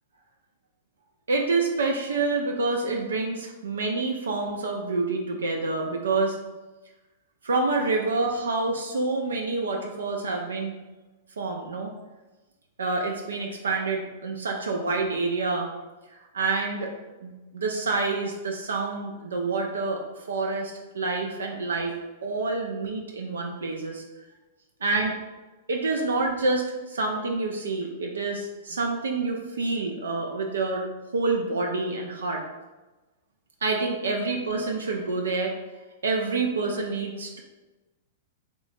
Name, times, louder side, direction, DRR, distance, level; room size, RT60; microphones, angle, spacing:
voice 1, 1.3-6.4 7.4-10.8 11.4-11.9 12.8-15.7 16.3-16.9 17.2-21.9 22.2-24.0 24.8-25.2 25.7-30.9 31.1-32.4 33.6-35.5 36.0-37.4, right 3 dB, 75° right, 1 dB, 0.4 m, -27 dB
3.2 x 3.0 x 2.6 m, 1.1 s
figure-of-eight pair, 105°, 0 cm